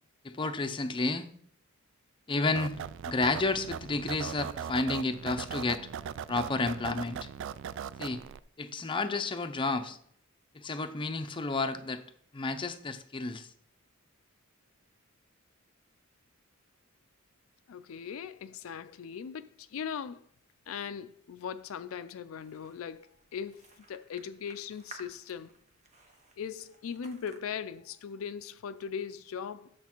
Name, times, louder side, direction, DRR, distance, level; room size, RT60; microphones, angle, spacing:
voice 1, 0.2-1.3 2.3-5.9 6.3-7.3 8.0-8.2 8.6-10.0 10.5-12.0 12.3-13.5, left 3 dB, 25° left, 0.6 m, -31 dB
sound 1, 2.5-8.4, right 8 dB, 60° right, 0.3 m, -39 dB
voice 2, 17.7-20.2 20.7-25.5 26.4-29.7, left 7 dB, 75° left, 0.4 m, -39 dB
sound 2, 22.3-27.4, right 3 dB, 35° right, 1.1 m, -55 dB
8.2 x 6.7 x 4.4 m
head